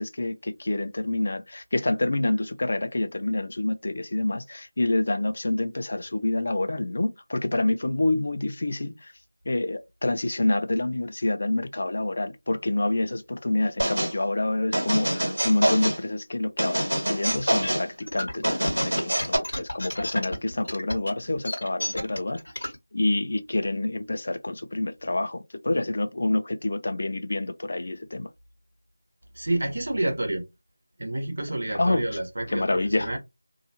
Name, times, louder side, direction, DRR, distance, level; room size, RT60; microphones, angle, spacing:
voice 1, 0.0-9.1 9.5-28.3 31.7-32.0 32.5-33.2, left 2 dB, 45° left, 0.4 m, -27 dB
sound 1, 13.8-14.1 14.7-16.0 16.6-17.9 18.4-19.4, right 1 dB, 85° right, 1.3 m, -25 dB
sound 2, 17.4-22.8, left 1 dB, 75° left, 1.0 m, -32 dB
voice 2, 29.3-30.4 31.0-33.2, right 1 dB, 55° right, 1.2 m, -29 dB
2.7 x 2.3 x 2.8 m
figure-of-eight pair, 175°, 0 cm